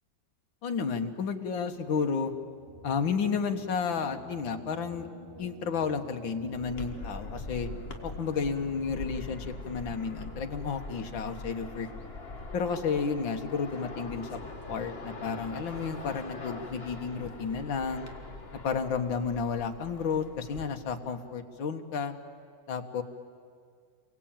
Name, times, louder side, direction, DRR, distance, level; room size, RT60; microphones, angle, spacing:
voice 1, 0.6-2.3 2.8-5.1 5.4-7.7 8.0-11.9 12.5-14.4 14.7-18.1 18.6-22.2 22.7-23.0, left 5 dB, 80° left, 5 dB, 2.1 m, -32 dB
sound 1, 1.4-8.8, equal, 20° right, 8.0 m, -50 dB
sound 2, 6.6-20.7, left 3 dB, 30° left, 2.0 m, -42 dB
29.0 x 23.0 x 8.9 m, 2.2 s
omnidirectional pair, 2.1 m